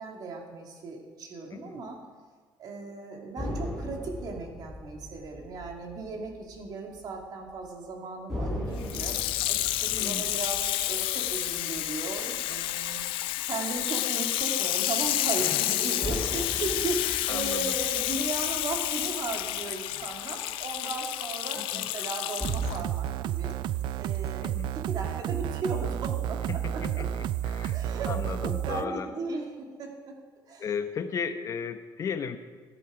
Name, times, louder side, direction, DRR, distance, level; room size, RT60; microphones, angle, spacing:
voice 1, 0.0-2.0 2.6-9.2 9.5-13.0 13.5-23.5 23.9-24.6 24.9-27.1 27.5-28.1 28.4-30.1 30.5-30.7, right 3 dB, 50° right, 1 dB, 2.3 m, -36 dB
voice 2, 1.5-1.8 9.9-10.3 15.4-15.6 17.3-17.8 19.9-20.0 21.6-21.9 24.4-24.7 26.5-29.1 30.6-32.4, left 6 dB, 40° left, 9 dB, 0.9 m, -36 dB
sound 1, 3.4-7.1 7.3-7.5 8.3-12.9 16.0-19.6 22.4-22.9, left 1 dB, ahead, 4.4 m, -39 dB
Water tap faucet / Sink (filling or washing), 8.8-22.8 23.5-23.6, left 15 dB, 85° left, 0.5 m, -30 dB
sound 2, 22.4-28.8, right 11 dB, 65° right, 0.3 m, -31 dB
13.5 x 10.5 x 5.0 m, 1.5 s
cardioid pair, 135°, 9 cm